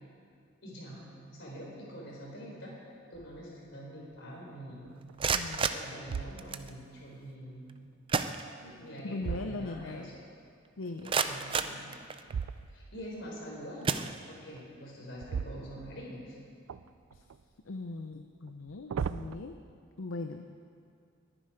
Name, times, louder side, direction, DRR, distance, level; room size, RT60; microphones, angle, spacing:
voice 1, 0.6-1.1 1.3-4.9 5.6-7.9 8.6-10.1 11.0-11.8 12.7-14.0 14.3-16.4, equal, 60° left, -3 dB, 4.4 m, -45 dB
sound 1, 3.1-3.6 4.1-4.2 4.8-5.4 6.0-6.9 8.5-10.2 12.2-13.1 15.1-16.3 16.7-17.4 18.5-19.4, right 6 dB, 90° right, 0.4 m, -39 dB
sound 2, 5.0-6.7 7.7-7.8 8.1-9.0 9.4-9.5 10.0-10.1 10.7-12.5 13.2-13.4 13.8-14.7, right 5 dB, 25° right, 0.4 m, -33 dB
voice 2, 5.3-5.7 9.0-10.1 10.8-11.1 17.2-17.3 17.7-19.6 20.0-20.5, left 3 dB, 75° left, 6 dB, 0.6 m, -39 dB
21.0 x 9.9 x 5.0 m, 2.3 s
head